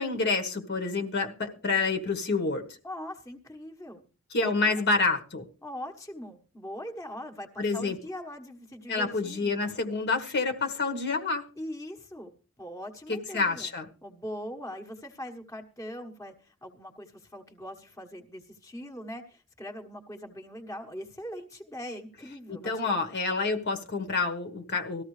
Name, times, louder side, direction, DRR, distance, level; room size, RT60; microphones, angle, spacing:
voice 1, 0.0-2.7 4.3-5.4 7.6-8.0 8.9-11.5 13.1-13.8 22.5-25.0, left 3 dB, 50° left, 1.5 m, -28 dB
voice 2, 2.8-4.0 4.4-4.7 5.6-9.6 11.6-12.3 12.6-13.7 14.0-23.0, equal, 15° left, 1.3 m, -41 dB
19.0 x 14.0 x 3.3 m
head